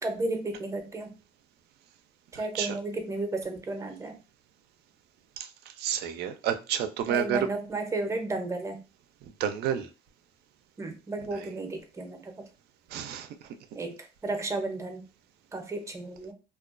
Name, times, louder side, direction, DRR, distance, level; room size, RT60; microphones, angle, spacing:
voice 1, 0.0-1.1 2.3-4.2 7.1-8.8 10.8-12.4 13.7-15.0 15.5-16.3, right 2 dB, 20° right, 0.6 m, -33 dB
voice 2, 2.3-2.8 5.4-7.5 9.2-9.9 11.3-11.5 12.9-13.3, right 9 dB, 75° right, 0.4 m, -31 dB
2.3 x 2.2 x 2.4 m
cardioid pair, 110°, 17 cm